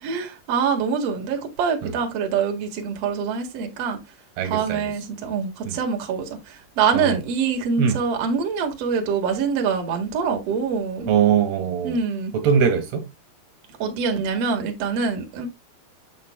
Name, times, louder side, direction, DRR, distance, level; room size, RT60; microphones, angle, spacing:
voice 1, 0.0-4.0 4.4-11.1 11.8-12.3 13.8-15.5, right 6 dB, 50° right, 2.3 m, -25 dB
voice 2, 4.4-4.8 5.7-5.8 6.9-7.1 7.8-8.0 11.1-12.0 12.3-13.0, right 7 dB, 85° right, 3.5 m, -21 dB
8.5 x 6.5 x 2.2 m
omnidirectional pair, 4.5 m